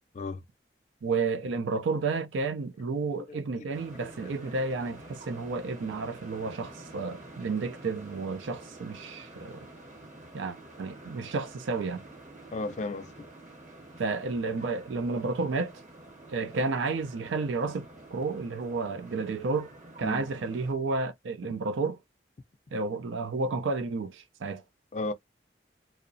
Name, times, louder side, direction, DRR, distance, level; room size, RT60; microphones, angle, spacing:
voice 1, 1.0-9.7 10.3-12.0 14.0-15.8 16.3-17.9 18.1-19.7 20.0-22.0 22.7-24.6, right 3 dB, 90° right, 0.4 m, -31 dB
sound 1, 3.7-20.7, right 2 dB, 40° right, 0.9 m, -48 dB
voice 2, 12.5-13.1 20.0-20.2 24.9-25.1, left 2 dB, 40° left, 0.3 m, -34 dB
2.7 x 2.0 x 2.6 m
head